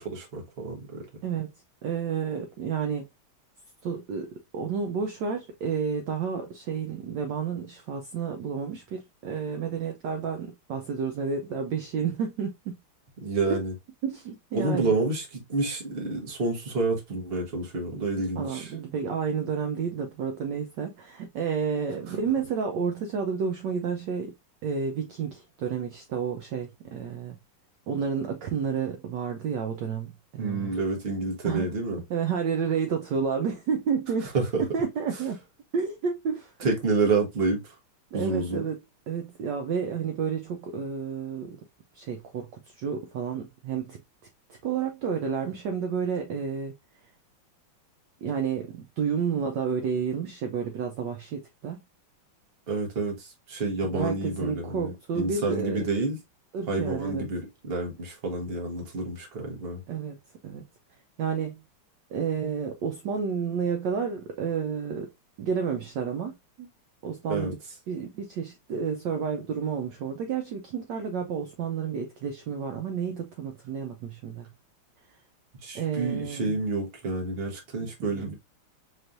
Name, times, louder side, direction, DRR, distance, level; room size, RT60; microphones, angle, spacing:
voice 1, 0.0-1.0 13.2-13.7 14.5-18.7 30.4-32.0 34.3-34.6 36.6-37.7 38.1-38.6 52.7-56.2 56.7-59.8 67.3-67.5 75.6-78.3, right 3 dB, 35° right, 1.3 m, -29 dB
voice 2, 1.8-3.1 3.8-12.8 14.0-14.9 18.4-24.3 24.6-27.4 27.9-30.8 31.4-31.7 32.1-34.3 34.6-35.4 35.7-36.5 38.1-38.8 39.1-41.6 41.9-44.0 44.6-46.7 48.2-51.8 53.9-55.9 56.5-57.3 59.9-60.2 60.4-60.6 61.2-61.6 62.1-65.1 65.4-66.7 67.0-67.6 67.9-74.5 75.1-75.2 75.7-76.6 77.8-78.3, right 6 dB, 70° right, 1.1 m, -30 dB
4.4 x 3.2 x 2.5 m
omnidirectional pair, 2.4 m